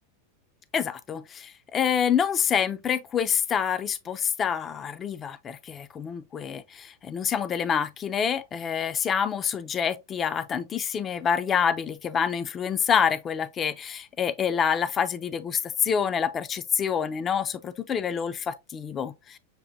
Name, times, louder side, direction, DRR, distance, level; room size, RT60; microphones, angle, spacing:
voice 1, 0.7-19.4, left 7 dB, 25° left, 0.3 m, -27 dB
6.8 x 2.5 x 2.6 m
supercardioid pair, 135°, 0 cm